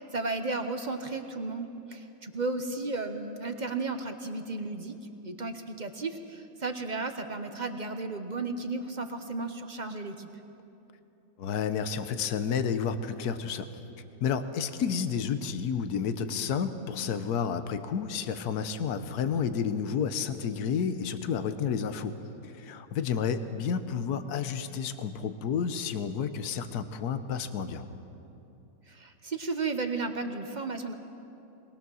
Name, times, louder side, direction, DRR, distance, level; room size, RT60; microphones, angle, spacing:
voice 1, 0.0-4.9 5.2-10.3 28.9-30.9, right 3 dB, 35° right, 7 dB, 0.9 m, -34 dB
voice 2, 11.4-13.8 14.2-27.8, left 7 dB, 75° left, 10 dB, 1.4 m, -31 dB
21.5 x 19.5 x 6.3 m, 2.9 s
omnidirectional pair, 1.7 m